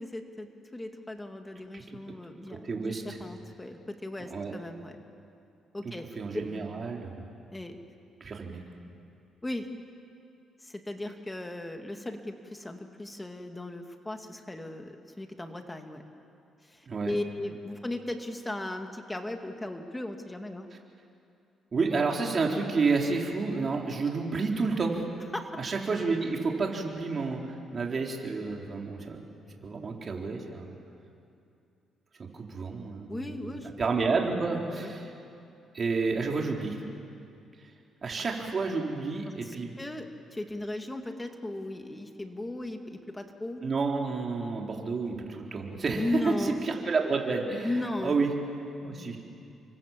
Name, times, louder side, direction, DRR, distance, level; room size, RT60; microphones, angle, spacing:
voice 1, 0.0-5.0 5.7-6.1 7.5-7.8 9.4-9.7 10.6-16.0 16.6-20.7 25.3-25.5 33.1-33.8 34.5-34.9 39.4-43.6 45.9-46.6 47.6-48.2, left 2 dB, 15° left, 5 dB, 2.3 m, -37 dB
voice 2, 2.5-3.0 4.3-4.5 5.8-7.3 8.2-8.6 16.9-17.1 21.7-25.0 25.6-29.2 29.6-30.7 32.2-35.1 35.7-36.8 38.0-39.8 43.6-48.3 48.8-49.2, right 4 dB, 40° right, 0 dB, 4.3 m, -30 dB
30.0 x 24.5 x 7.6 m, 2.6 s
cardioid pair, 90°, 0 cm